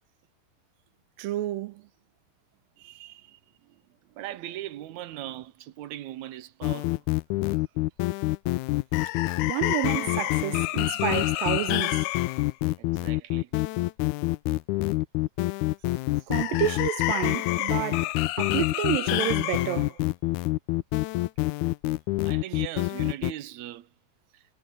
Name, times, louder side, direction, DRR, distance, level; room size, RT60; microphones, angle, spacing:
voice 1, 1.2-1.7 3.0-3.1 9.4-12.0 16.3-18.1 18.4-19.9, right 14 dB, 85° right, 2.6 m, -30 dB
voice 2, 4.2-7.0 12.8-13.6 22.2-23.9 24.3-24.4, right 13 dB, 70° right, 1.8 m, -39 dB
sound 1, 6.6-23.3, left 19 dB, 85° left, 1.7 m, -26 dB
omnidirectional pair, 4.0 m